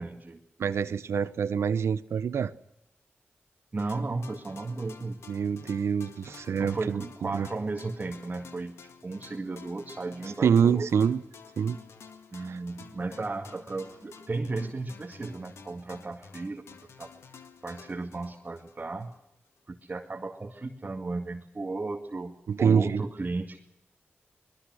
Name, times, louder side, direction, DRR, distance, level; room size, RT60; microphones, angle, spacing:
voice 1, 0.0-0.4 3.7-5.2 6.6-10.9 12.3-17.1 17.6-19.1 19.7-23.7, right 3 dB, 40° right, 2.3 m, -35 dB
voice 2, 0.6-2.5 5.3-7.5 10.4-11.2 11.6-11.8 12.5-12.6 22.5-23.0, right 7 dB, 85° right, 0.9 m, -26 dB
sound 1, 3.8-19.2, left 5 dB, 90° left, 1.9 m, -51 dB
25.0 x 21.0 x 6.4 m
cardioid pair, 70°, 4 cm